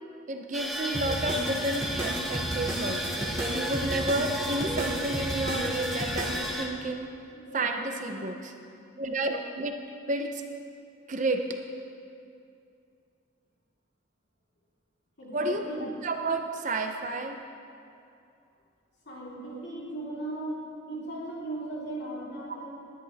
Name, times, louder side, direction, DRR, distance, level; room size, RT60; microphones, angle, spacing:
voice 1, 0.3-7.1 7.5-8.5 9.0-9.7 10.1-10.4 11.1-11.4 15.3-17.4 22.5-22.6, right 2 dB, 35° right, 5 dB, 0.7 m, -31 dB
sound 1, 0.5-6.6, equal, ahead, 1.0 m, -33 dB
sound 2, 0.9-6.5, right 1 dB, 15° right, 2.2 m, -34 dB
voice 2, 7.3-8.2 15.2-15.8 19.1-20.6 20.9-22.7, right 1 dB, 55° left, -7 dB, 3.8 m, -38 dB
20.0 x 11.0 x 3.5 m, 2.5 s
head